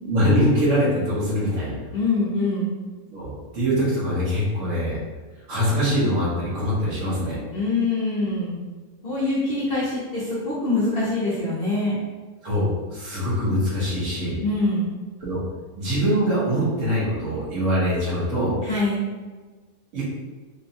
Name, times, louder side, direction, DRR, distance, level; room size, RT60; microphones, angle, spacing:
voice 1, 0.0-1.8 3.1-5.0 5.5-7.4 12.4-14.4 15.2-15.4 15.7-18.5 19.9-20.0, equal, 60° right, -8 dB, 1.3 m, -23 dB
voice 2, 1.9-2.7 7.5-8.5 9.0-12.0 14.4-14.9 18.6-19.0, left 2 dB, 50° left, -8 dB, 0.8 m, -24 dB
3.8 x 2.2 x 2.7 m, 1.3 s
omnidirectional pair, 1.6 m